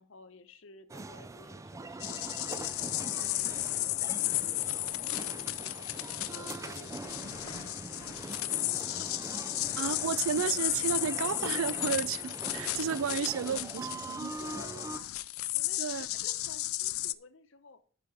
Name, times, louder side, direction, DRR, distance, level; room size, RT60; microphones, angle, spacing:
voice 1, 0.0-2.7 3.0-9.1 9.4-9.8 13.1-13.5 14.4-15.1 15.5-17.8, left 4 dB, 65° left, 0.8 m, -54 dB
sound 1, 0.9-15.0, right 2 dB, 15° right, 0.3 m, -43 dB
sound 2, 2.0-17.1, left 18 dB, 85° left, 0.4 m, -34 dB
sound 3, 5.2-7.9 9.0-11.1 12.2-12.9 13.4-14.9 15.5-15.7, left 2 dB, 20° left, 1.0 m, -57 dB
voice 2, 9.8-14.4 15.8-16.1, right 7 dB, 80° right, 0.4 m, -32 dB
10.5 x 5.0 x 4.9 m
head